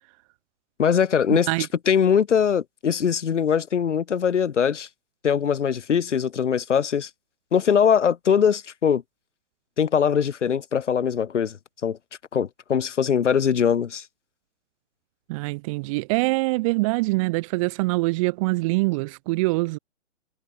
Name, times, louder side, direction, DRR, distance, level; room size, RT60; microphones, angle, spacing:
voice 1, 0.8-1.5 1.9-4.9 5.2-7.1 7.5-9.0 9.8-11.6 11.8-12.0 12.3-14.0, left 7 dB, 75° left, 2.7 m, -21 dB
voice 2, 15.3-19.8, right 24 dB, 25° right, 6.9 m, -24 dB
hypercardioid pair, 165°, 36 cm